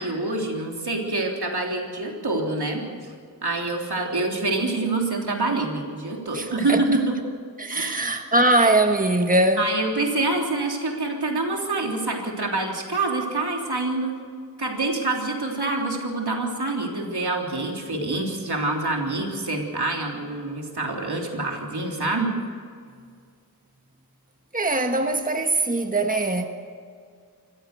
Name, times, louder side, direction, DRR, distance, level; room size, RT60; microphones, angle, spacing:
voice 1, 0.0-3.1 3.4-7.1 7.7-8.0 9.6-14.1 14.6-22.3, right 2 dB, 80° right, 3.5 m, -26 dB
voice 2, 6.3-6.8 7.6-9.7 24.5-26.5, right 2 dB, 20° right, 1.4 m, -21 dB
25.5 x 15.0 x 6.8 m
wide cardioid pair, 50°, 38 cm